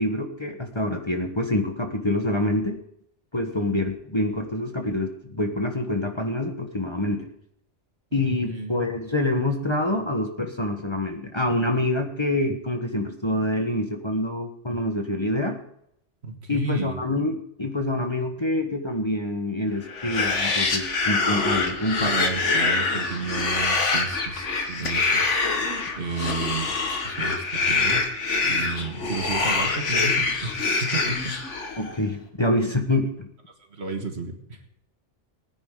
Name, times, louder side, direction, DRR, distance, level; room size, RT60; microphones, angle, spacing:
voice 1, 0.0-2.8 3.3-7.3 8.1-15.6 16.5-22.2 31.8-33.3, left 1 dB, 25° left, 4 dB, 1.2 m, -26 dB
voice 2, 8.4-8.9 16.2-17.0 22.0-25.5 26.0-28.1 28.5-31.4 33.7-34.6, right 4 dB, 65° right, 4 dB, 1.9 m, -32 dB
sound 1, 19.9-31.9, left 3 dB, 80° left, 1.9 m, -25 dB
20.0 x 10.0 x 3.8 m, 0.74 s
omnidirectional pair, 1.2 m